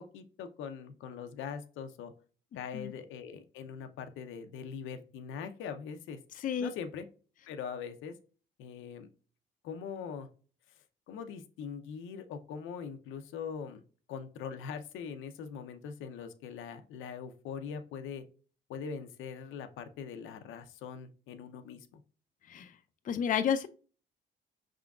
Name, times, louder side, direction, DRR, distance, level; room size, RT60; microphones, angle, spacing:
voice 1, 0.1-2.1 2.5-6.2 6.6-7.1 7.5-8.1 8.6-9.1 9.6-10.3 11.1-13.8 14.1-18.2 18.7-22.0, left 6 dB, 90° left, 8 dB, 0.6 m, -42 dB
voice 2, 6.4-6.7 22.5-22.7 23.1-23.7, left 8 dB, 45° left, 9 dB, 0.4 m, -30 dB
5.0 x 3.7 x 2.3 m, 0.39 s
cardioid pair, 90°, 20 cm